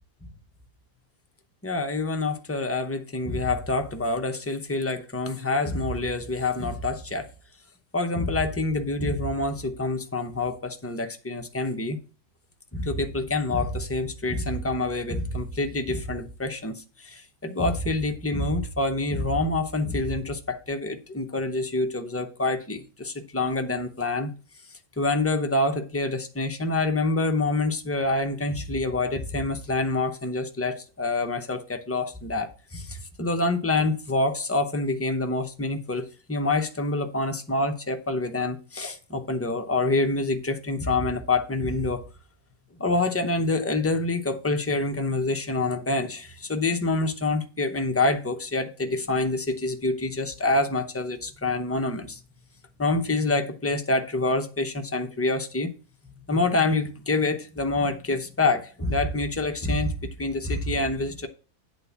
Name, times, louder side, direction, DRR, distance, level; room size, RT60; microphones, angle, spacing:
voice 1, 1.6-7.3 7.9-12.0 12.7-24.3 25.0-42.0 42.8-52.2 52.8-55.7 56.3-61.3, left 2 dB, 15° left, 0.5 m, -26 dB
8.8 x 4.0 x 7.0 m
omnidirectional pair, 1.6 m